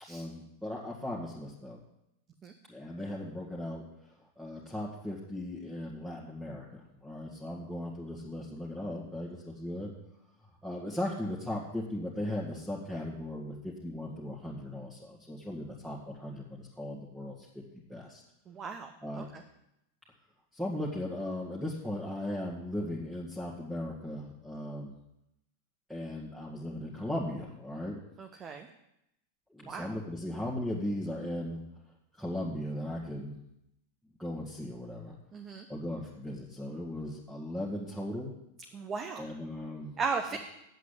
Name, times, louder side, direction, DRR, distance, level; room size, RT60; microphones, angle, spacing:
voice 1, 0.1-1.8 2.7-3.8 4.4-9.9 10.6-17.5 17.7-18.2 19.0-19.3 20.5-24.9 25.9-28.0 29.5-31.6 32.2-33.4 34.2-35.2 35.7-38.3 39.2-40.0 40.3-40.4, left 1 dB, 5° right, -5 dB, 2.0 m, -37 dB
voice 2, 18.5-18.9 19.3-19.4 28.2-28.7 29.6-29.9 35.3-35.6 38.7-39.3 40.0-40.4, right 5 dB, 25° right, 5 dB, 0.9 m, -36 dB
8.2 x 7.9 x 8.6 m, 0.84 s
figure-of-eight pair, 90°, 0 cm